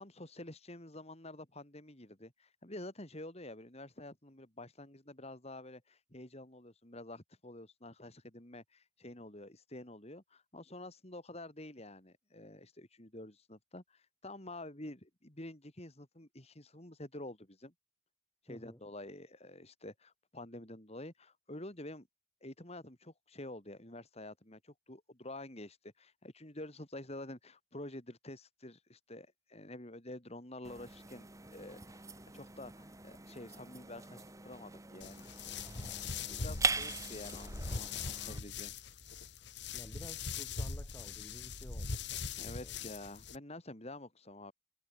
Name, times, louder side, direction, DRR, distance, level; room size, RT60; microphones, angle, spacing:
voice 1, 0.0-17.7 18.4-22.1 22.4-32.0 32.3-35.2 36.2-38.7 42.4-44.5, left 1 dB, 30° left, 3.3 m, -49 dB
voice 2, 18.5-18.8 39.7-42.9, equal, 15° left, 7.6 m, -53 dB
sound 1, 30.6-38.4, right 4 dB, 15° right, 1.5 m, -41 dB
sound 2, 35.0-43.4, left 5 dB, 55° left, 1.8 m, -41 dB
head